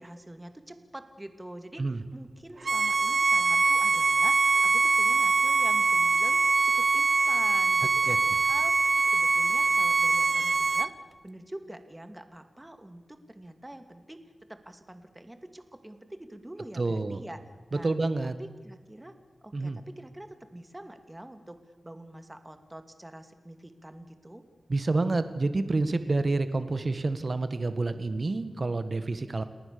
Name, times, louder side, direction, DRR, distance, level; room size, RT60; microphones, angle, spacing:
voice 1, 0.0-14.2 14.5-17.4 17.7-18.0 18.2-19.1 19.4-24.5, right 1 dB, 15° right, 8 dB, 2.5 m, -45 dB
Bowed string instrument, 2.6-10.9, right 4 dB, 65° right, 0.8 m, -23 dB
voice 2, 16.8-17.2 17.8-18.3 19.5-19.8 24.7-29.4, right 3 dB, 50° right, 11 dB, 1.7 m, -28 dB
30.0 x 19.5 x 7.0 m, 1.4 s
wide cardioid pair, 80°, 0 cm